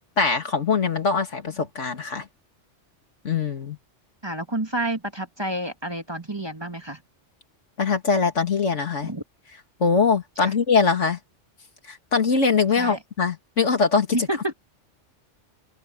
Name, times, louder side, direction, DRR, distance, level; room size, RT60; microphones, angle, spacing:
voice 1, 0.2-2.2 3.2-3.8 7.8-9.1 9.8-11.2 11.9-14.1, left 5 dB, 80° left, 2.5 m, -22 dB
voice 2, 4.2-7.0 9.0-9.2 10.4-10.5 12.7-13.0 14.1-14.5, right 1 dB, 20° right, 2.0 m, -29 dB
omnidirectional pair, 1.2 m